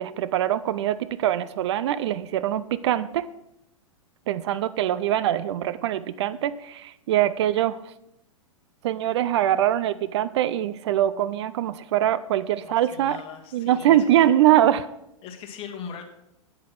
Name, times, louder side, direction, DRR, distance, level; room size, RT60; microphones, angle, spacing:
voice 1, 0.0-3.3 4.3-7.8 8.8-13.2 13.5-14.9, right 12 dB, 55° right, 15 dB, 0.5 m, -23 dB
voice 2, 12.5-14.3 15.2-16.0, left 7 dB, 35° left, 4 dB, 1.8 m, -40 dB
8.9 x 8.4 x 6.0 m, 0.85 s
figure-of-eight pair, 100°, 18 cm